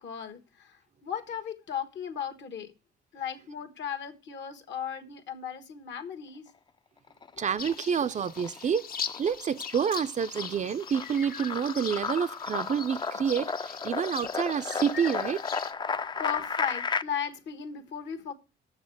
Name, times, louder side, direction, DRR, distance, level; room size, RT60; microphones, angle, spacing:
voice 1, 0.0-2.7 3.1-6.5 16.2-18.3, left 8 dB, 65° left, 1.3 m, -36 dB
sound 1, 7.1-7.9 8.2-17.0, left 5 dB, 25° left, 0.4 m, -34 dB
voice 2, 7.4-8.9 9.2-15.4, right 7 dB, 40° right, 0.4 m, -28 dB
sound 2, 7.6-15.7, left 7 dB, 50° left, 0.7 m, -41 dB
6.8 x 6.5 x 6.9 m
cardioid pair, 90°, 20 cm